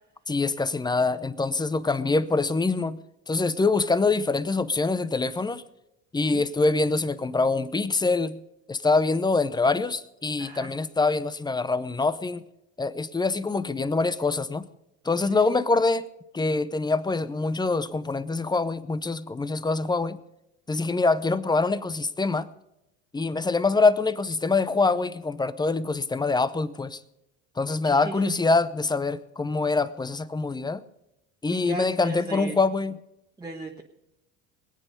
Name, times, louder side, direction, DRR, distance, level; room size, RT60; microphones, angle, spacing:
voice 1, 0.3-3.0 3.3-5.6 6.1-8.4 8.7-12.4 12.8-14.6 15.0-16.0 16.3-20.2 20.7-22.5 23.1-27.0 27.6-30.8 31.4-32.9, left 3 dB, 10° left, 0.7 m, -24 dB
voice 2, 10.4-10.7 15.2-15.4 27.8-28.3 31.5-32.6 33.4-33.8, right 3 dB, 10° right, 1.3 m, -37 dB
21.5 x 8.9 x 5.2 m
supercardioid pair, 100°, 36 cm